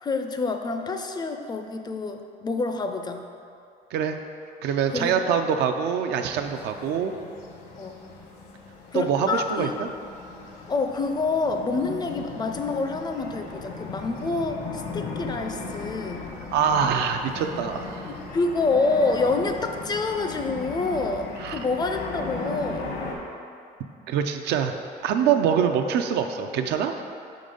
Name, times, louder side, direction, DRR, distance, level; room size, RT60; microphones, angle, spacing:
voice 1, 0.0-3.3 4.9-5.3 7.8-8.0 8.9-9.8 10.7-16.3 18.0-22.9, left 3 dB, 25° left, 6 dB, 0.4 m, -27 dB
voice 2, 4.6-7.1 8.9-9.9 16.5-18.1 21.4-21.6 24.1-24.7 25.0-27.0, right 7 dB, 80° right, 6 dB, 0.5 m, -24 dB
sound 1, 6.4-23.2, left 3 dB, 70° left, 1.0 m, -37 dB
5.3 x 3.8 x 5.1 m, 2.5 s
cardioid pair, 110°, 17 cm